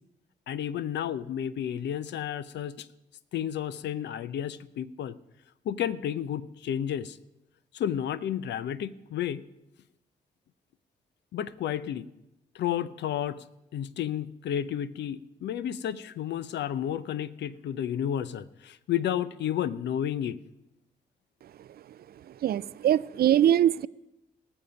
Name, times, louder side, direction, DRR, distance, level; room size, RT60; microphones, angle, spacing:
voice 1, 0.5-2.9 3.3-5.2 5.6-7.2 7.7-9.4 11.3-12.1 12.5-13.5 13.7-20.4, left 10 dB, 65° left, 16 dB, 0.6 m, -31 dB
voice 2, 22.3-23.9, right 11 dB, 55° right, 20 dB, 0.4 m, -23 dB
19.0 x 7.1 x 5.3 m, 0.89 s
hypercardioid pair, 45°, 19 cm